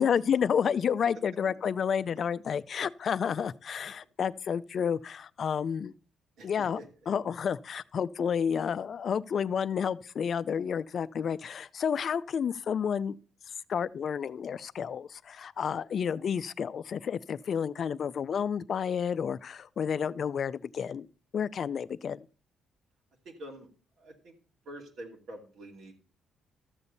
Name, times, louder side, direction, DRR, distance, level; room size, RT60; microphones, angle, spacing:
voice 1, 0.0-5.9 6.4-6.8 7.1-13.2 13.7-21.1 21.3-22.3, left 7 dB, 55° left, 0.4 m, -30 dB
voice 2, 6.4-6.9 23.2-23.7 24.0-24.3 24.6-25.9, right 1 dB, 75° right, 2.7 m, -46 dB
13.5 x 7.0 x 4.0 m
cardioid pair, 90°, 0 cm